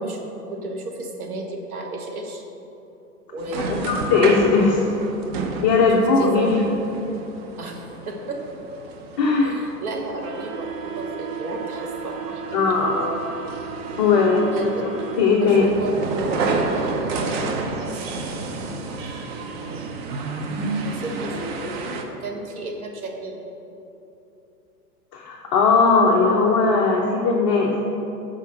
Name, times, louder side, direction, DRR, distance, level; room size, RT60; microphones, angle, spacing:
voice 1, 0.0-2.4 3.3-4.3 5.9-6.6 7.6-8.4 9.4-12.4 14.2-14.8 15.4-18.8 19.6-19.9 20.8-23.4, right 2 dB, 65° right, 2 dB, 1.2 m, -34 dB
sound 1, 3.4-22.0, right 3 dB, 40° right, 0.7 m, -30 dB
voice 2, 3.8-4.8 5.6-6.6 9.2-9.6 12.5-13.1 14.0-15.6 25.1-27.7, left 4 dB, 25° left, -2 dB, 0.4 m, -19 dB
5.5 x 5.1 x 6.4 m, 2.9 s
figure-of-eight pair, 100°, 47 cm